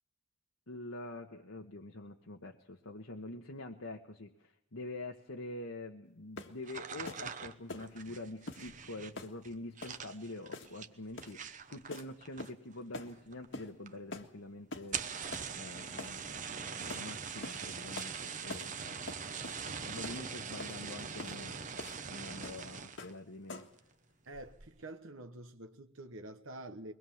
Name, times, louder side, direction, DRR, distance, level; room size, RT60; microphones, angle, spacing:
voice 1, 0.7-15.0 15.5-19.0 19.6-21.6 22.1-23.7, left 2 dB, 90° left, 1.4 m, -46 dB
sound 1, 6.4-6.6 7.1-7.3 7.7-7.9 8.5-8.7 9.2-9.4 9.8-10.0 10.5-10.8 11.2-11.4 11.9-12.1 12.4-12.7 12.9-13.1 13.5-13.7 14.1-14.3 14.7-14.9 15.3-15.5 16.0-16.2 16.9-17.1 17.4-17.6 18.0-18.2 18.5-18.7 19.1-19.6 20.0-20.2 20.6-20.8 21.2-21.4 21.8-22.0 22.4-22.6 23.0-23.2 23.5-23.8, left 2 dB, 65° left, 1.7 m, -45 dB
sound 2, 6.6-12.8 13.0-13.6 13.9-14.0 14.2-14.3 14.8-23.1 23.5-23.9 24.3-24.7, right 6 dB, 40° right, 1.0 m, -42 dB
voice 2, 24.3-26.9, right 1 dB, 75° right, 1.2 m, -47 dB
23.0 x 19.5 x 7.2 m
head